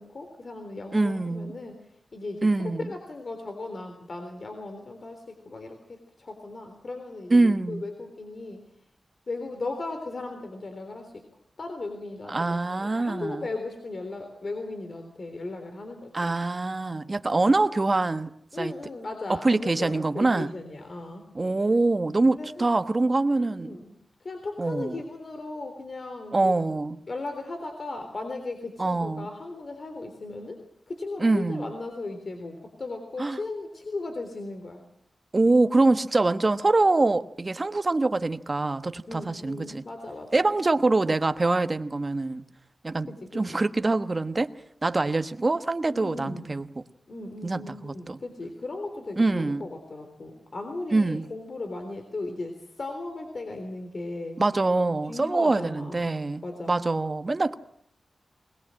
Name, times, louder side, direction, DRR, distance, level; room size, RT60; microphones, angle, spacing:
voice 1, 0.0-1.8 2.1-8.6 9.3-11.2 11.6-16.4 18.5-21.2 22.3-22.8 23.6-23.9 24.2-26.5 27.1-34.8 39.1-40.5 43.1-43.6 45.9-46.5 47.1-54.4 55.1-56.1 56.4-56.8, left 2 dB, 60° left, 5 dB, 3.6 m, -37 dB
voice 2, 0.9-1.5 2.4-2.9 7.3-7.8 12.3-13.4 16.1-18.3 18.6-18.7 19.4-20.5 21.3-23.8 24.6-25.0 26.3-27.0 28.8-29.3 31.2-31.7 33.2-33.4 35.3-39.8 40.3-42.4 42.8-44.5 44.8-46.6 47.4-48.2 49.2-49.6 50.9-51.2 54.4-56.4 56.7-57.5, right 2 dB, 40° right, 10 dB, 1.2 m, -24 dB
21.0 x 21.0 x 7.7 m, 0.70 s
cardioid pair, 65°, 0 cm